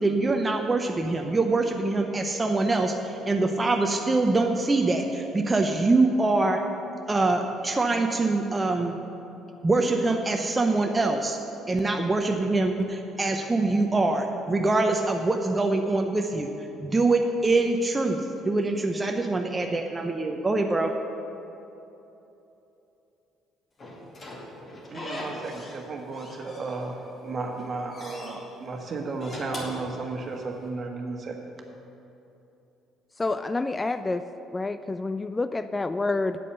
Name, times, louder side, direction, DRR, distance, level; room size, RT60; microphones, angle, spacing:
voice 1, 0.0-6.6 7.1-8.9 9.6-11.4 11.7-16.5 16.8-20.9, right 2 dB, 20° right, 3 dB, 0.8 m, -24 dB
Slam / Squeak, 23.8-25.8 26.1-27.1 27.5-28.4 29.0-30.6, left 1 dB, 40° left, 2.5 m, -40 dB
voice 2, 24.9-31.4, right 3 dB, 40° right, 3 dB, 1.5 m, -34 dB
voice 3, 33.2-34.2 34.5-36.4, left 3 dB, 20° left, 11 dB, 0.3 m, -28 dB
8.6 x 8.4 x 6.8 m, 3.0 s
figure-of-eight pair, 50°, 0 cm